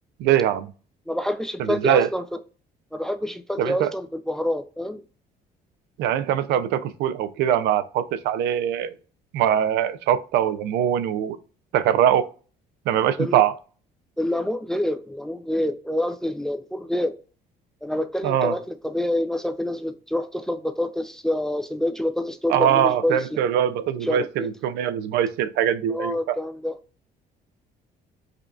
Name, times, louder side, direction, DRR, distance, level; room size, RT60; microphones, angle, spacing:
voice 1, 0.2-0.7 1.6-2.1 3.6-3.9 6.0-8.9 9.3-11.4 11.7-12.3 12.9-13.5 18.2-18.6 22.5-26.4, right 10 dB, 80° right, 0.4 m, -22 dB
voice 2, 1.1-2.4 2.9-5.0 13.2-13.4 14.2-17.1 17.8-23.4 24.0-24.5 25.9-26.7, left 1 dB, 5° left, 0.3 m, -27 dB
4.9 x 2.5 x 2.3 m
cardioid pair, 110°, 17 cm